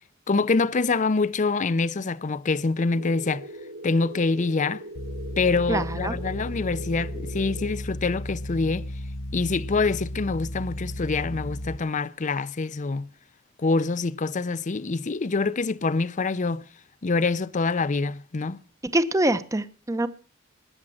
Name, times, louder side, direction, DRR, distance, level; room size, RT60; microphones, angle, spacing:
voice 1, 0.3-3.5 3.8-4.8 5.4-8.8 9.3-13.1 13.6-16.6 17.0-18.6, left 3 dB, 40° left, 0.6 m, -25 dB
sound 1, 2.8-7.8, right 1 dB, 70° right, 4.3 m, -40 dB
sound 2, 4.9-11.8, left 1 dB, 80° left, 1.0 m, -34 dB
voice 2, 5.7-6.1 18.9-20.1, right 1 dB, 15° right, 0.8 m, -24 dB
20.0 x 7.3 x 6.4 m
head